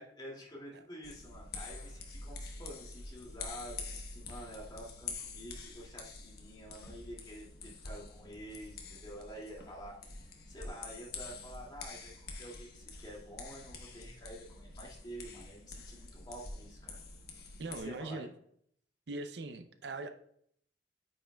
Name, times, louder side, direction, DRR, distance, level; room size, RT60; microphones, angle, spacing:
voice 1, 0.0-12.1 12.4-17.0 17.6-18.3, equal, 25° left, -3 dB, 2.4 m, -49 dB
sound 1, 1.0-17.8, left 3 dB, 60° left, 1.2 m, -47 dB
voice 2, 17.6-18.3 19.1-20.1, right 2 dB, 70° right, 8 dB, 0.6 m, -40 dB
8.8 x 5.6 x 2.3 m, 0.66 s
head